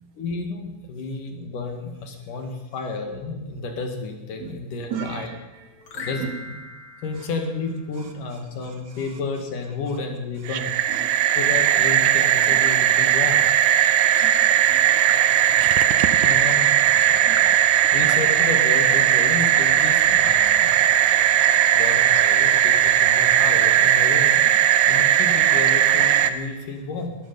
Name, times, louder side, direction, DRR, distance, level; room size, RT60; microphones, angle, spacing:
voice 1, 0.2-5.3 6.0-6.5 7.0-10.8 11.4-13.7 16.2-16.8 17.9-20.8 21.8-24.4 24.9-27.2, left 3 dB, 85° left, 4 dB, 3.6 m, -31 dB
voice 2, 4.9-5.4 5.8-6.3 8.0-8.1 8.6-8.7 10.9-11.4 12.5-12.6 14.2-15.3 17.2-17.5, right 8 dB, 65° right, 4 dB, 3.2 m, -37 dB
sound 1, 5.8-8.3 14.0-16.7, left 4 dB, 45° left, 2.5 m, -41 dB
sound 2, 10.5-26.3, right 10 dB, 85° right, 2.3 m, -18 dB
20.0 x 13.0 x 5.4 m, 1.2 s
omnidirectional pair, 3.6 m